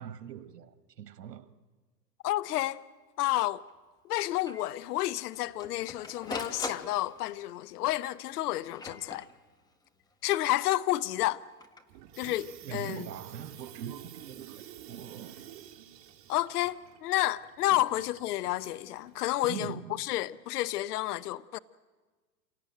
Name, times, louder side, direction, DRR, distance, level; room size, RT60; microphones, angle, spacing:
voice 1, 0.0-1.5 12.6-15.4 17.7-17.8 19.4-20.0, right 9 dB, 85° right, 1.5 m, -42 dB
voice 2, 2.2-2.8 3.2-3.6 4.0-9.3 10.2-11.4 12.2-13.1 16.3-21.6, left 15 dB, 70° left, 0.8 m, -30 dB
Printer, 2.8-2.9 3.2-3.3 3.7-3.8 4.5-4.7 5.3-7.4 8.2-9.7 11.4-11.8, left 2 dB, 10° left, 1.7 m, -42 dB
Water tap faucet / Sink (filling or washing), 11.9-19.5, right 11 dB, 45° right, 2.7 m, -51 dB
27.5 x 18.0 x 9.2 m
hypercardioid pair, 120°, 48 cm